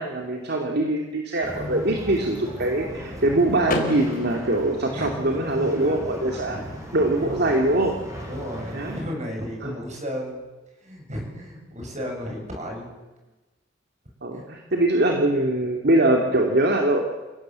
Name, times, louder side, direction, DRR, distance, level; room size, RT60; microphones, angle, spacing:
voice 1, 0.0-6.6 6.9-7.9 8.7-9.0 9.6-9.7 14.2-17.0, right 1 dB, 60° right, 2 dB, 2.8 m, -23 dB
sound 1, 1.4-9.0, equal, 15° right, 6.7 m, -37 dB
Car / Door, 3.6-5.6, left 2 dB, 50° left, 3.7 m, -31 dB
voice 2, 4.9-5.4 5.8-6.0 6.5-6.9 7.2-7.7 8.3-10.5 10.8-12.9 14.3-14.4, equal, 40° right, 2 dB, 7.7 m, -34 dB
29.0 x 17.5 x 7.8 m, 1.1 s
head